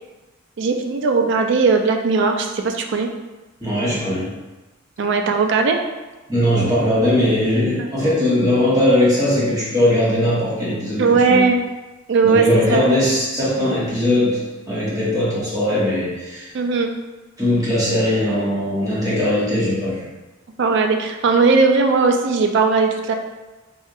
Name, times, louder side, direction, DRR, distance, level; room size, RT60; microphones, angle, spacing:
voice 1, 0.6-3.1 5.0-5.8 7.8-7.9 11.0-11.6 12.1-12.9 16.5-16.9 20.6-23.1, right 4 dB, 65° right, 4 dB, 0.4 m, -18 dB
voice 2, 3.6-4.3 6.3-11.4 12.2-14.4 14.6-16.5 17.4-20.0, left 1 dB, 20° right, -9 dB, 1.2 m, -19 dB
4.2 x 2.6 x 2.4 m, 1.2 s
head